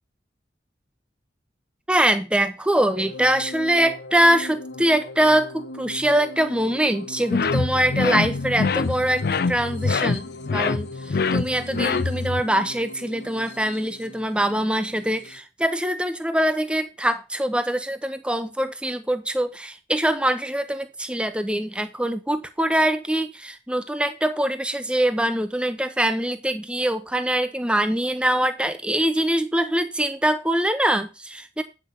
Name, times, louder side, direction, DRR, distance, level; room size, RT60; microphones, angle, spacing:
voice 1, 1.9-31.6, right 1 dB, 5° right, 10 dB, 0.8 m, -23 dB
sound 1, 2.9-15.4, left 2 dB, 75° left, 1.2 m, -39 dB
sound 2, 7.3-12.4, left 4 dB, 55° left, 0.5 m, -24 dB
8.9 x 5.9 x 5.3 m, 0.29 s
head